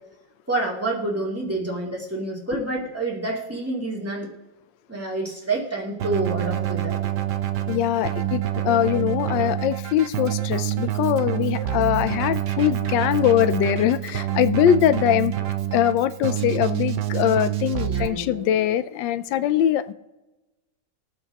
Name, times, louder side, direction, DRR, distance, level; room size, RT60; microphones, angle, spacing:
voice 1, 0.5-4.3 4.9-7.0 17.9-18.7, right 2 dB, 10° right, 2.4 m, -28 dB
Keyboard (musical), 6.0-18.1, right 12 dB, 70° right, 1.3 m, -27 dB
voice 2, 7.7-15.3 15.7-19.9, left 11 dB, 85° left, 1.3 m, -22 dB
22.5 x 7.8 x 2.9 m
omnidirectional pair, 1.9 m